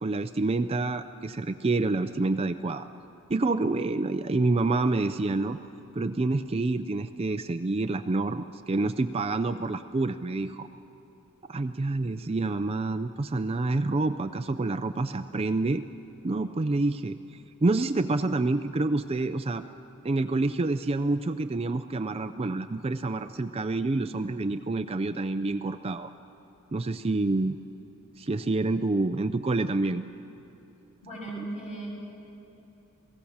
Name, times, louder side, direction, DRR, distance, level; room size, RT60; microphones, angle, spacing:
voice 1, 0.0-2.9 3.3-5.6 5.9-10.7 11.5-15.8 16.2-19.6 20.0-26.1 26.7-27.5 28.2-30.0, right 2 dB, 25° right, 9 dB, 0.4 m, -28 dB
voice 2, 31.0-31.9, right 2 dB, 30° left, -3 dB, 6.7 m, -37 dB
28.0 x 18.0 x 7.2 m, 2.9 s
head